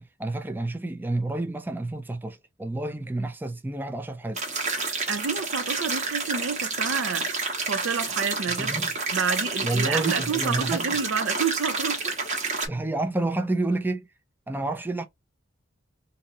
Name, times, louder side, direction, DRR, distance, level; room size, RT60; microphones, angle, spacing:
voice 1, 0.0-4.4 8.6-8.9 9.6-10.9 12.7-14.1 14.5-15.1, right 2 dB, 10° right, 0.4 m, -29 dB
sound 1, 4.4-12.7, right 3 dB, 40° right, 1.3 m, -29 dB
voice 2, 5.1-8.8 9.1-12.2, right 6 dB, 70° right, 0.5 m, -29 dB
2.7 x 2.6 x 4.0 m
head